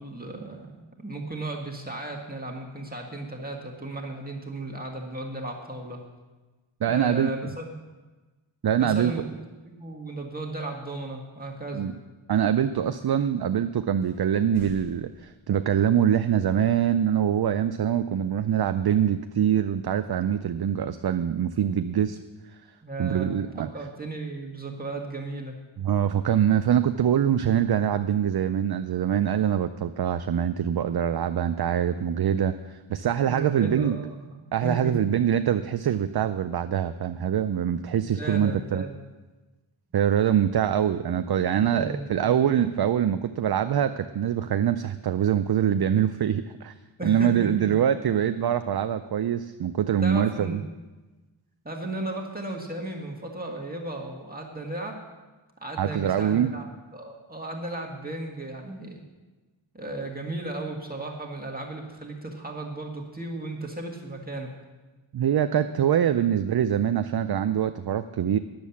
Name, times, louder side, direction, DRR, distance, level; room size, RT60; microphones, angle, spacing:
voice 1, 0.0-6.0 6.8-7.7 8.8-9.3 9.6-11.9 22.8-25.6 33.2-35.0 38.2-39.0 41.5-42.3 47.0-47.7 50.0-50.6 51.6-55.0 55.6-59.0 59.7-64.5, right 2 dB, 20° right, -1 dB, 1.7 m, -35 dB
voice 2, 6.8-7.3 8.6-9.1 11.7-11.9 12.3-22.2 23.0-23.7 25.8-34.0 34.5-38.8 39.9-46.7 47.0-50.6 55.8-56.5 65.1-68.4, right 9 dB, 50° right, 10 dB, 0.5 m, -24 dB
sound 1, 10.1-10.4 11.4-11.8 12.5-12.6 13.4-13.5 14.0-15.9, equal, 65° left, 2.7 m, -50 dB
10.5 x 7.3 x 7.0 m, 1.2 s
wide cardioid pair, 65°, 50 cm